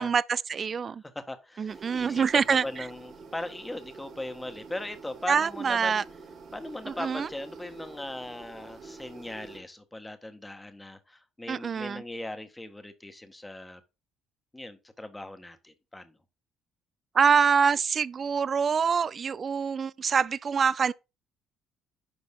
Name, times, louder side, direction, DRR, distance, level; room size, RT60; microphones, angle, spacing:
voice 1, 0.0-1.0 1.6-2.9 5.3-6.0 6.9-7.3 11.5-12.0 17.1-20.9, right 6 dB, 45° right, 0.5 m, -25 dB
voice 2, 1.1-6.0 6.5-13.8 14.5-16.1, left 1 dB, 10° left, 1.6 m, -39 dB
sound 1, 1.7-9.6, right 4 dB, 60° right, 2.5 m, -47 dB
10.0 x 5.3 x 3.8 m
supercardioid pair, 75°, 0 cm